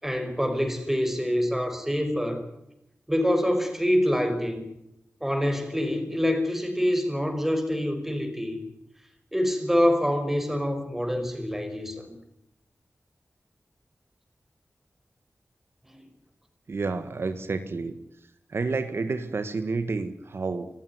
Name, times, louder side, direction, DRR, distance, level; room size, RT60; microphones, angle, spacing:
voice 1, 0.0-2.4 3.1-4.7 5.2-8.6 9.3-12.2 15.9-16.0, equal, 5° right, 6 dB, 5.3 m, -26 dB
voice 2, 16.7-18.0 18.5-20.7, right 4 dB, 65° right, 9 dB, 1.7 m, -30 dB
26.5 x 16.0 x 9.5 m, 0.82 s
wide cardioid pair, 105°, 4 cm